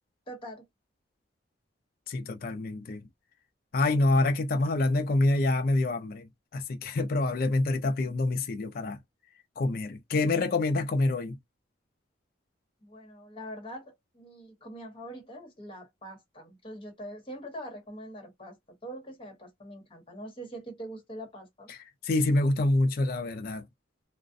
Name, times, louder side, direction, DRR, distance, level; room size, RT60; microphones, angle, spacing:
voice 1, 0.3-0.6 12.8-18.6 18.8-21.7, right 1 dB, 30° left, 1.1 m, -43 dB
voice 2, 2.1-3.0 3.7-9.0 9.6-11.4 21.7-21.8 22.0-23.6, left 2 dB, 50° left, 0.4 m, -26 dB
2.4 x 2.0 x 2.6 m
head